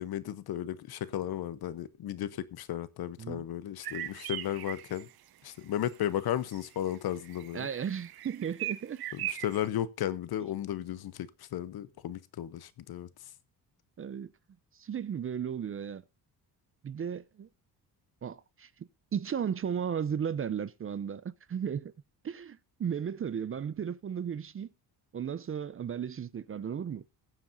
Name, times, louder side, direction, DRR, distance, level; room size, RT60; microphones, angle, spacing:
voice 1, 0.0-5.1 5.4-7.7 9.2-13.1, left 11 dB, 65° left, 0.9 m, -34 dB
sound 1, 3.8-5.1 5.9-6.0 6.3-9.7, right 13 dB, 65° right, 0.8 m, -39 dB
voice 2, 7.5-9.0 14.0-14.3 14.7-16.0 16.8-17.5 18.2-21.9 22.2-24.7 25.1-27.0, right 8 dB, 35° right, 0.5 m, -35 dB
21.5 x 7.3 x 2.6 m
cardioid pair, 110°, 41 cm